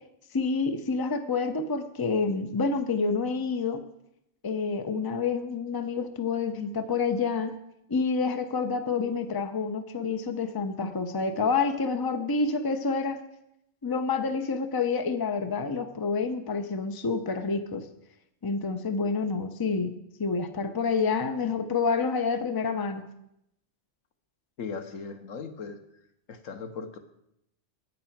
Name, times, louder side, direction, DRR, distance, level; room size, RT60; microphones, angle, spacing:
voice 1, 0.3-3.8 4.4-7.6 7.9-13.2 13.8-17.9 18.4-23.1, left 4 dB, 25° left, 8 dB, 0.6 m, -28 dB
voice 2, 24.6-25.8 26.3-27.0, left 5 dB, 80° left, 8 dB, 1.4 m, -38 dB
9.4 x 8.8 x 5.8 m, 0.81 s
omnidirectional pair, 1.3 m